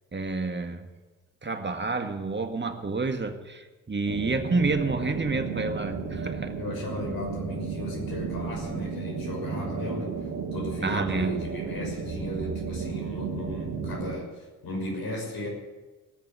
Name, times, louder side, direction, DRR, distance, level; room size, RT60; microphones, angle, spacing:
voice 1, 0.1-0.8 1.4-6.5 10.8-11.4, right 3 dB, 30° right, 6 dB, 1.9 m, -29 dB
sound 1, 4.1-14.2, right 5 dB, 85° right, 2.1 m, -33 dB
voice 2, 6.6-10.1 10.5-15.5, left 1 dB, 65° left, -1 dB, 6.2 m, -36 dB
19.0 x 6.8 x 9.5 m, 1.2 s
hypercardioid pair, 45°, 38 cm